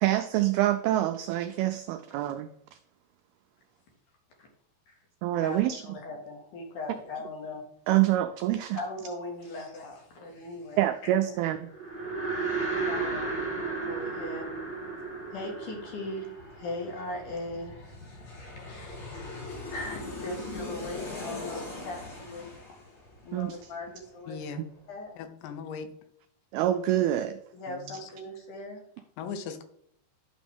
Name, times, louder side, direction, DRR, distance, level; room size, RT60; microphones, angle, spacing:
voice 1, 0.0-2.8 5.2-5.8 7.9-8.8 10.8-11.6 23.3-23.6 24.6-24.7 26.5-27.4, right 13 dB, 85° right, 8 dB, 2.2 m, -26 dB
voice 2, 5.4-7.6 8.7-10.8 11.3-11.4 12.9-13.4 13.8-14.5 15.3-22.7 23.2-24.4 24.9-25.1 27.5-28.8, left 2 dB, 55° left, 0 dB, 2.9 m, -39 dB
sound 1, 11.7-17.1, right 3 dB, 10° left, 0.6 m, -33 dB
Aircraft, 12.7-12.8 13.1-24.4 24.7-24.8, left 3 dB, 30° left, 2.7 m, -42 dB
voice 3, 24.3-24.6 25.2-25.9 27.7-27.8 29.2-29.6, left 6 dB, 85° left, 9 dB, 3.1 m, -38 dB
11.5 x 6.1 x 3.5 m, 0.70 s
omnidirectional pair, 5.0 m